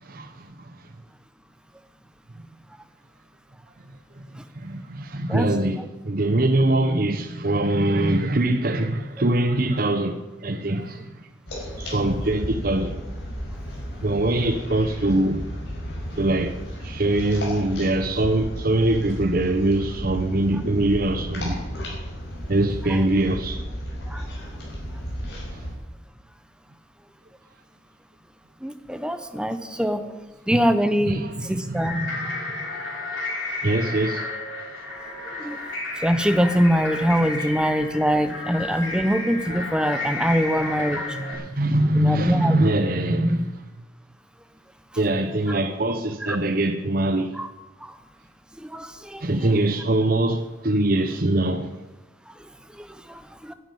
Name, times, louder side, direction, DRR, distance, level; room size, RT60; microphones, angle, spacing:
voice 1, 0.0-0.7 4.2-4.3 4.5-11.3 11.8-13.0 14.0-15.5 16.2-21.6 22.5-23.6 31.1-32.3 33.6-34.3 41.1-43.7 45.0-47.3 49.2-51.7, right 1 dB, 45° right, 0.8 m, -23 dB
sound 1, 11.5-25.7, equal, 55° left, 5.6 m, -33 dB
voice 2, 28.6-30.1 30.5-32.0 35.2-35.6 36.0-41.4 41.9-42.5 46.3-46.4 47.3-47.5 47.8-48.0 48.6-49.5 52.3-53.5, equal, 5° right, 0.9 m, -24 dB
sound 2, 31.7-41.3, left 2 dB, 85° left, 5.8 m, -32 dB
11.0 x 10.5 x 9.3 m
head